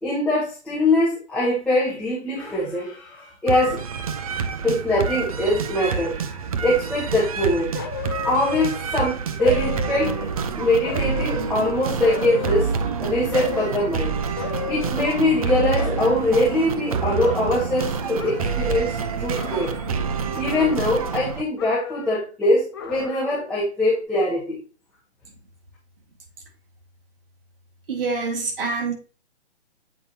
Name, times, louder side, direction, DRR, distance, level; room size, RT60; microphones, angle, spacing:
voice 1, 0.0-3.8 4.6-7.7 8.2-10.1 10.6-12.7 13.0-14.1 14.7-19.7 20.3-24.6, left 1 dB, 5° left, -9 dB, 1.5 m, -22 dB
sound 1, 3.5-21.4, right 5 dB, 35° right, 0.5 m, -27 dB
sound 2, 7.7-9.0 9.4-10.5 10.8-12.9 13.3-13.9 14.4-15.5 15.7-17.9 18.2-18.9 19.3-20.1 20.4-21.3 21.6-22.3 22.7-23.5 23.9-24.0, left 9 dB, 20° left, 0.5 m, -35 dB
voice 2, 27.9-28.9, right 4 dB, 55° right, 2 dB, 2.2 m, -26 dB
8.0 x 4.8 x 2.8 m, 0.35 s
hypercardioid pair, 150°, 34 cm